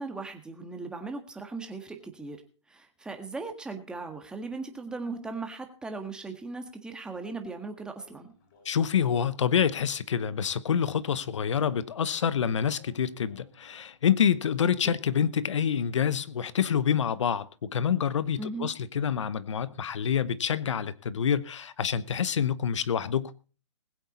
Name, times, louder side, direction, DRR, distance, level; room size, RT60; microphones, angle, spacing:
voice 1, 0.0-2.4 2.7-8.3 14.8-14.9 18.4-18.7, right 3 dB, 5° right, 1.6 m, -38 dB
sound 1, 8.0-13.7, left 5 dB, 45° left, 5.9 m, -61 dB
voice 2, 8.6-23.3, left 8 dB, 75° left, 1.0 m, -27 dB
20.5 x 8.0 x 4.2 m
hypercardioid pair, 150°, 15 cm